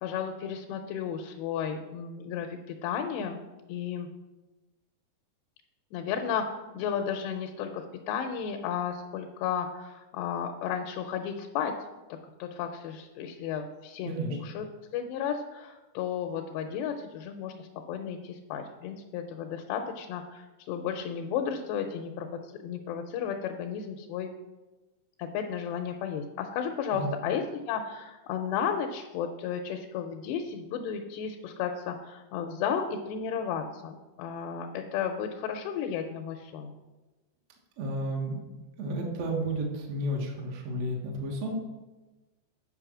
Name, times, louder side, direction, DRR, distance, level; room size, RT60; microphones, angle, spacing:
voice 1, 0.0-3.4 3.7-4.1 5.9-11.7 12.4-14.7 14.9-24.3 25.2-36.7, left 7 dB, 80° left, 4 dB, 2.5 m, -33 dB
voice 2, 14.0-14.4 26.9-27.1 37.8-38.4 38.8-41.5, right 1 dB, 70° right, 0 dB, 1.6 m, -32 dB
9.0 x 5.2 x 6.1 m, 1.1 s
omnidirectional pair, 5.2 m